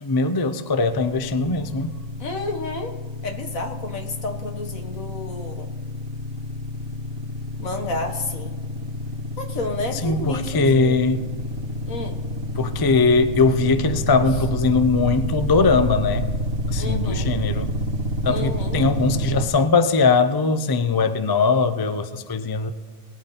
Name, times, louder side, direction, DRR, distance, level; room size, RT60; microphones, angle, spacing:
voice 1, 0.0-2.0 10.0-11.3 12.6-16.3 16.7-17.7 18.2-22.7, left 4 dB, 35° left, 11 dB, 0.4 m, -20 dB
sound 1, 0.9-19.5, equal, 75° right, 1.6 m, -29 dB
voice 2, 2.2-2.9 3.2-5.7 7.6-8.6 9.4-11.0 11.9-12.2 16.8-17.3 18.3-18.8, left 2 dB, 75° left, 4 dB, 1.9 m, -31 dB
19.5 x 8.7 x 4.2 m, 1.6 s
omnidirectional pair, 1.4 m